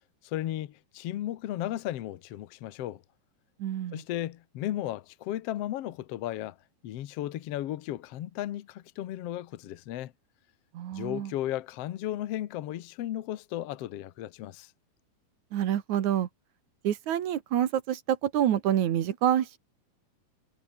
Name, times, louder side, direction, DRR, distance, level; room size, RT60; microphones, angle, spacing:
voice 1, 0.2-3.0 3.9-6.6 6.8-10.1 10.9-14.7, left 13 dB, 80° left, 1.4 m, -35 dB
voice 2, 3.6-4.0 10.7-11.3 15.5-16.3 16.8-19.6, right 11 dB, 60° right, 2.5 m, -27 dB
omnidirectional pair, 4.3 m